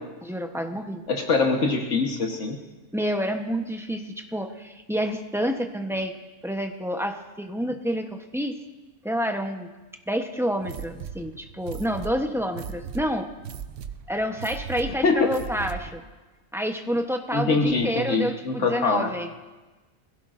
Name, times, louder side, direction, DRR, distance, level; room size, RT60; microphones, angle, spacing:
voice 1, 0.2-1.0 2.9-6.1 6.4-8.6 9.0-9.7 10.1-13.3 14.1-16.0 16.5-19.3, equal, 5° right, 4 dB, 0.7 m, -28 dB
voice 2, 1.1-2.6 15.0-15.3 17.3-19.1, left 4 dB, 75° left, 2 dB, 1.5 m, -23 dB
sound 1, 10.6-16.0, right 8 dB, 80° right, 1.0 m, -38 dB
21.5 x 16.0 x 2.5 m, 1.2 s
omnidirectional pair, 1.3 m